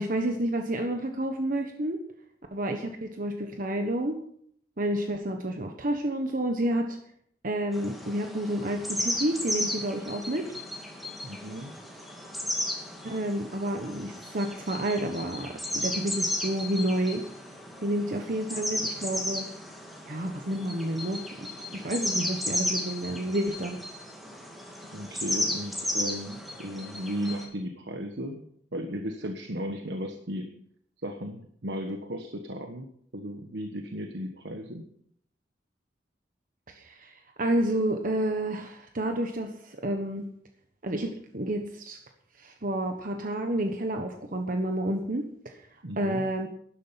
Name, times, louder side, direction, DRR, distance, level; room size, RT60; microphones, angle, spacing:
voice 1, 0.0-2.0 2.5-4.2 4.8-7.0 7.4-10.5 13.0-17.2 17.8-19.5 20.1-21.5 21.7-23.8 36.7-40.3 40.8-42.0 42.4-45.7 46.0-46.5, right 1 dB, 50° right, 4 dB, 1.2 m, -30 dB
sound 1, 7.7-27.5, left 1 dB, ahead, 2.4 m, -34 dB
voice 2, 11.2-11.7 24.9-28.5 28.7-30.5 31.0-32.9 33.1-34.8 45.8-46.2, equal, 75° right, 4 dB, 1.4 m, -35 dB
12.5 x 11.5 x 5.9 m, 0.68 s
head